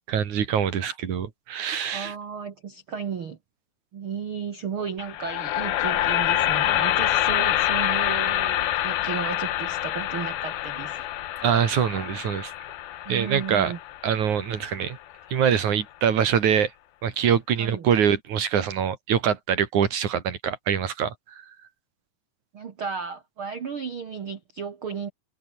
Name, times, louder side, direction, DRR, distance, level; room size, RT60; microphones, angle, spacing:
voice 1, 0.1-2.1 11.4-12.5 13.1-13.7 14.0-15.0 15.3-16.7 17.0-21.1, right 8 dB, 50° right, 3.2 m, -24 dB
voice 2, 1.9-3.4 3.9-11.0 11.8-12.1 13.0-13.8 17.6-17.9 22.5-25.1, right 6 dB, 85° right, 1.1 m, -34 dB
sound 1, 5.0-15.1, left 13 dB, 65° left, 2.7 m, -26 dB
omnidirectional pair, 5.1 m